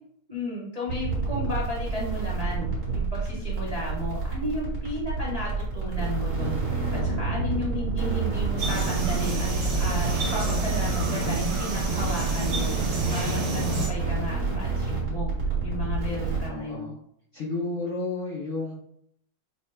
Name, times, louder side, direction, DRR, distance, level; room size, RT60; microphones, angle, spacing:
voice 1, 0.3-9.5 9.8-12.7 13.1-15.3 15.6-16.9, left 1 dB, 90° right, -7 dB, 0.3 m, -34 dB
sound 1, 0.9-16.5, right 3 dB, 40° right, 1.6 m, -28 dB
sound 2, 8.6-13.9, right 3 dB, 60° right, 1.9 m, -30 dB
voice 2, 16.4-16.9 17.3-18.7, left 3 dB, 85° left, -2 dB, 0.6 m, -32 dB
6.0 x 2.3 x 3.3 m, 0.71 s
omnidirectional pair, 2.3 m